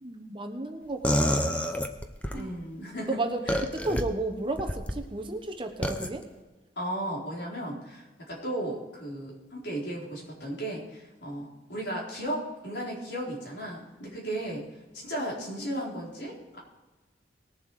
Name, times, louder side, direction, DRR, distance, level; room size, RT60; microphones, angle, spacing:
voice 1, 0.0-1.5 2.3-2.5 3.1-6.2, right 2 dB, 30° right, 5 dB, 1.1 m, -33 dB
sound 1, 1.0-2.4 3.5-4.0 4.6-5.0 5.8-6.1, equal, 10° left, 0.7 m, -27 dB
voice 2, 2.3-3.2 3.5-3.6 6.8-14.6 14.9-16.6, right 1 dB, 75° left, -4 dB, 4.3 m, -35 dB
19.5 x 7.3 x 4.9 m, 1.2 s
head